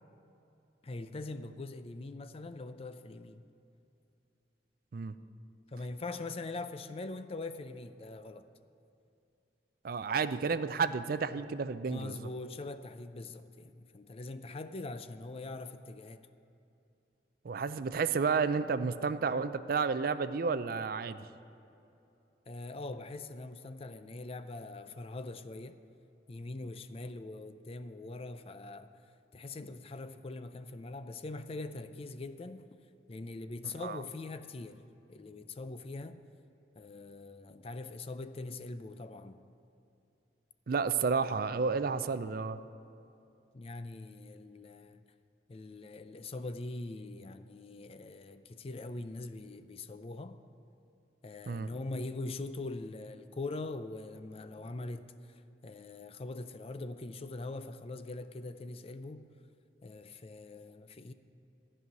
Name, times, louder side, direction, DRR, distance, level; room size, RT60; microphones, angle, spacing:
voice 1, 0.8-3.4 5.7-8.5 11.9-16.3 22.5-25.8 26.3-28.9 29.3-32.7 33.1-34.8 35.1-36.2 36.8-39.4 43.5-45.0 45.5-50.4 51.2-59.3 59.8-61.1, left 2 dB, 35° left, 0.4 m, -42 dB
voice 2, 9.8-12.2 17.4-21.3 33.8-34.0 40.7-42.6 51.5-51.7, right 5 dB, 55° right, 0.4 m, -31 dB
14.0 x 5.5 x 9.3 m
head